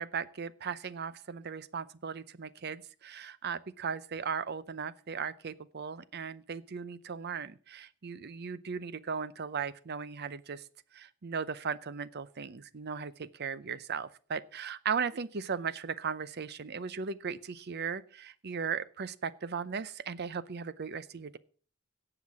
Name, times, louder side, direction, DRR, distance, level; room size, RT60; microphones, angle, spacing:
voice 1, 0.0-10.6 10.9-21.4, right 6 dB, 50° right, 16 dB, 0.6 m, -37 dB
17.0 x 5.9 x 6.0 m, 0.42 s
head